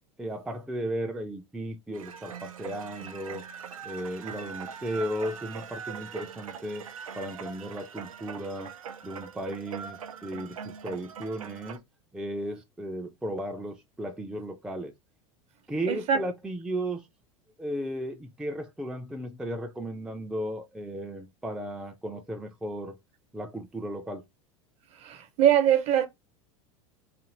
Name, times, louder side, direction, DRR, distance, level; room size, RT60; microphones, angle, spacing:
voice 1, 0.2-3.4 3.8-6.9 7.1-8.7 9.0-11.8 12.1-14.9 15.7-17.1 17.6-23.0 23.3-24.2, right 1 dB, 5° right, 0.4 m, -35 dB
sound 1, 1.9-11.8, right 7 dB, 80° right, 0.4 m, -42 dB
voice 2, 15.9-16.2 25.0-26.1, right 9 dB, 40° right, 0.7 m, -22 dB
2.6 x 2.5 x 3.0 m
figure-of-eight pair, 85°, 17 cm